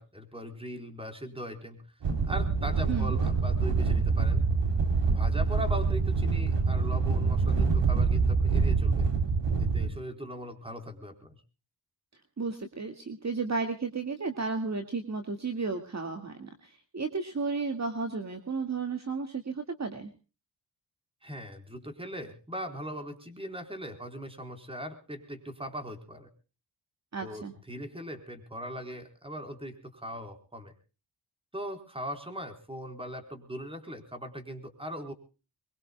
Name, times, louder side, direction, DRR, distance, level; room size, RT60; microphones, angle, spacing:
voice 1, 0.0-1.9 2.3-4.4 5.1-9.1 9.6-11.4 21.2-26.3 27.2-30.7 31.5-35.1, equal, 15° right, 6 dB, 4.1 m, -40 dB
sound 1, 2.0-9.9, right 4 dB, 85° right, 3.5 m, -26 dB
voice 2, 12.4-20.1 27.1-27.5, right 4 dB, 40° right, 6 dB, 2.1 m, -33 dB
23.5 x 22.5 x 2.3 m, 0.34 s
cardioid pair, 80°, 42 cm